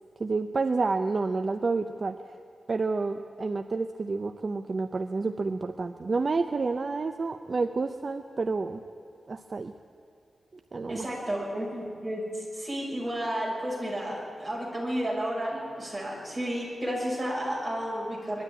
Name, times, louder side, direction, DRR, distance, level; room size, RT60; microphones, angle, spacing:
voice 1, 0.2-2.3 2.7-8.8 9.3-9.7 10.5-11.1, right 3 dB, 40° right, 7 dB, 0.6 m, -29 dB
voice 2, 10.9-18.4, equal, 15° right, -4 dB, 6.3 m, -32 dB
21.0 x 12.5 x 9.8 m, 2.5 s
wide cardioid pair, 130°, 0 cm